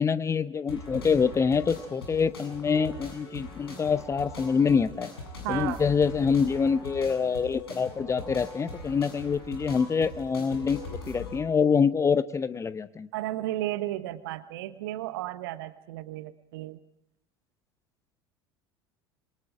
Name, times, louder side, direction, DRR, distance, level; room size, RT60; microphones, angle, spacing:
voice 1, 0.0-5.1 5.5-13.1, left 6 dB, 20° left, 16 dB, 0.9 m, -25 dB
sound 1, 0.7-11.4, left 2 dB, 70° left, 7.6 m, -41 dB
voice 2, 5.4-5.8 13.1-16.8, right 15 dB, 60° right, 13 dB, 1.3 m, -33 dB
27.0 x 24.0 x 5.0 m, 0.76 s
figure-of-eight pair, 70°, 13 cm